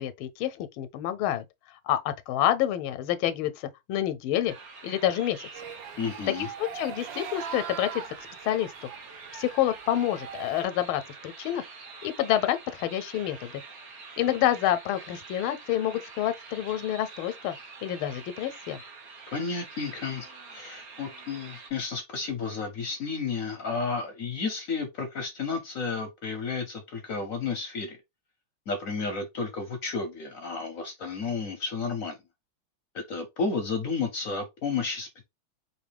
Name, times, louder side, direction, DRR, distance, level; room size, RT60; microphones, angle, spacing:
voice 1, 0.0-1.4 1.8-4.5 4.8-5.5 6.4-8.0 8.4-8.7 9.3-11.6 12.0-13.5 14.2-17.6 17.8-18.8, left 12 dB, 85° left, 1.4 m, -28 dB
sound 1, 4.5-21.7, right 4 dB, 50° right, 1.4 m, -46 dB
sound 2, 5.5-10.6, right 8 dB, 75° right, 1.3 m, -41 dB
voice 2, 6.0-6.5 19.3-28.0 28.7-32.2 32.9-35.2, left 4 dB, 65° left, 0.8 m, -32 dB
4.7 x 2.7 x 3.3 m
omnidirectional pair, 2.2 m